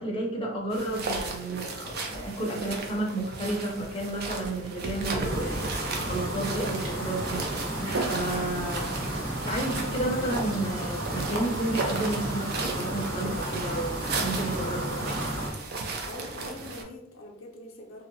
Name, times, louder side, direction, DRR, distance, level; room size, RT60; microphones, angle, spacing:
voice 1, 0.0-7.4 8.1-8.9 9.4-15.3, right 1 dB, 25° left, -2 dB, 0.5 m, -32 dB
sound 1, 0.7-16.8, right 3 dB, 50° right, 0.4 m, -35 dB
sound 2, 5.2-15.5, right 1 dB, 80° right, 0.9 m, -33 dB
voice 2, 16.1-18.0, left 2 dB, 75° left, 0 dB, 0.5 m, -44 dB
2.6 x 2.0 x 2.6 m, 0.81 s
head